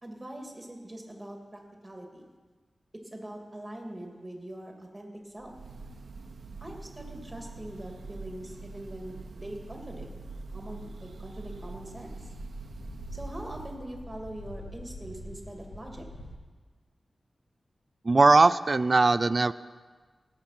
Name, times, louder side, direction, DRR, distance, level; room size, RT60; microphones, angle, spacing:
voice 1, 0.0-2.3 3.1-5.5 6.6-10.1 10.5-12.2 13.1-16.0, right 1 dB, 20° right, 1 dB, 2.4 m, -42 dB
Breathing / Bird, 5.4-13.9, right 3 dB, 80° right, 0.8 m, -43 dB
sound 1, 11.3-16.4, left 1 dB, 70° left, 2.2 m, -45 dB
voice 2, 18.0-19.5, right 3 dB, 45° right, 15 dB, 0.4 m, -20 dB
18.5 x 7.4 x 5.8 m, 1.4 s
wide cardioid pair, 85°, 0 cm